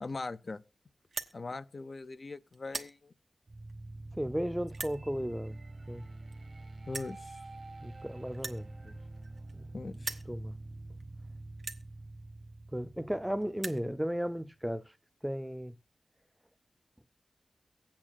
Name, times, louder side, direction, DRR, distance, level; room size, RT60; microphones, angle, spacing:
voice 1, 0.0-0.6 1.3-3.1 6.9-7.4 9.7-10.2, left 3 dB, 60° left, 0.5 m, -40 dB
sound 1, 1.0-1.3 2.0-2.2 2.5-2.9 3.7-3.8 4.7-5.0 6.0-6.1 6.3-6.4 6.9-7.2 8.3-9.7 9.9-10.3 11.0-11.1 11.6-11.8 12.8-12.9 13.1-13.2 13.4-13.8, right 4 dB, 80° right, 1.1 m, -40 dB
sound 2, 3.5-14.4, right 2 dB, 55° right, 1.3 m, -47 dB
voice 2, 4.1-5.6 5.9-6.1 7.8-9.0 9.5-9.7 10.3-10.5 12.7-14.9 15.2-15.8, equal, 5° right, 0.6 m, -35 dB
23.5 x 8.8 x 2.3 m
wide cardioid pair, 70°, 0 cm